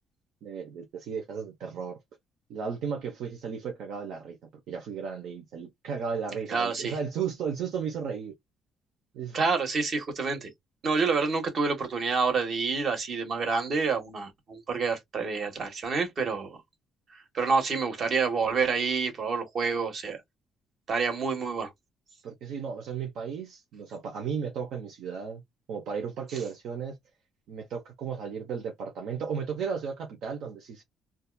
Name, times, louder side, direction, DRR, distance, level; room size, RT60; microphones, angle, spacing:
voice 1, 0.4-2.0 2.5-4.4 4.7-8.3 9.1-9.4 22.2-25.4 25.7-27.0 27.5-30.8, right 6 dB, 75° right, 0.7 m, -34 dB
voice 2, 6.5-7.0 9.3-10.5 10.8-16.6 17.1-20.2 20.9-21.7, right 4 dB, 50° right, 1.2 m, -28 dB
2.7 x 2.4 x 2.2 m
cardioid pair, 110°, 0 cm